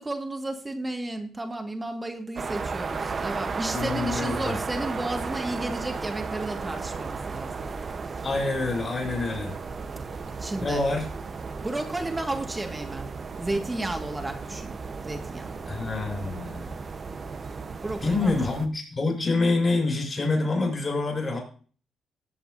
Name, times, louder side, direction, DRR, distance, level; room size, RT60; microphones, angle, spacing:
voice 1, 0.0-7.6 10.4-10.9 11.6-13.1 13.4-14.7 15.0-15.6 17.8-18.4, right 2 dB, 20° right, 4 dB, 2.0 m, -33 dB
sound 1, 2.4-18.7, right 4 dB, 45° right, 1.1 m, -34 dB
voice 2, 3.7-4.5 8.2-9.5 10.6-11.1 15.7-16.8 18.0-21.4, left 3 dB, 35° left, -1 dB, 6.5 m, -26 dB
18.5 x 7.8 x 2.8 m, 0.40 s
cardioid pair, 75°, 0 cm